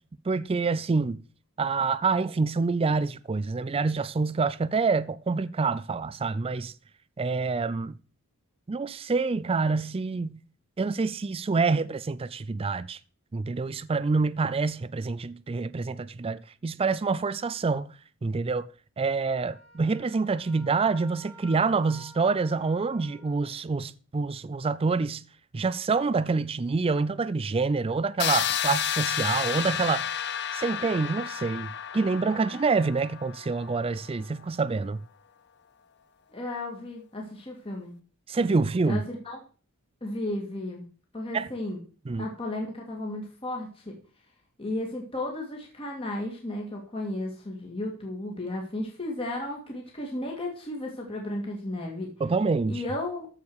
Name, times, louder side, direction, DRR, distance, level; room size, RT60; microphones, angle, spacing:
voice 1, 0.3-1.2 1.6-6.7 7.2-8.0 8.7-10.4 10.8-13.0 13.3-17.9 18.2-18.7 19.0-25.2 25.5-30.1 30.5-35.0 38.3-39.0 41.3-41.5 42.1-42.3 52.2-52.8, right 4 dB, 25° right, 0.4 m, -27 dB
Wind instrument woodwind instrument, 19.4-23.5, right 1 dB, 80° left, 4.6 m, -50 dB
sound 1, 28.2-34.0, left 9 dB, 50° left, 0.7 m, -31 dB
voice 2, 36.3-37.9 38.8-39.4 40.0-40.8 41.1-41.8 42.2-44.0 44.6-52.1 52.7-53.3, left 1 dB, 25° left, 2.3 m, -34 dB
14.0 x 4.9 x 6.4 m
head